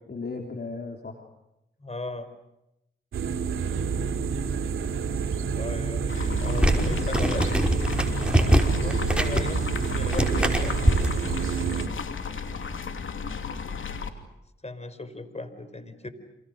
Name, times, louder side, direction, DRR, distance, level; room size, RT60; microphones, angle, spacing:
voice 1, 0.1-1.3 6.4-7.2 8.4-8.6 10.3-11.3, left 3 dB, 50° left, 3 dB, 3.8 m, -38 dB
voice 2, 1.8-2.3 5.5-7.6 8.7-11.1 14.6-16.1, left 2 dB, 30° left, 12 dB, 5.1 m, -37 dB
sound 1, 3.1-11.9, right 6 dB, 85° right, 2.5 m, -28 dB
sound 2, 6.1-14.1, left 5 dB, 70° left, 3.0 m, -33 dB
sound 3, 6.4-11.1, right 1 dB, 5° right, 5.5 m, -24 dB
28.5 x 28.5 x 6.6 m, 0.87 s
cardioid pair, 45°, 21 cm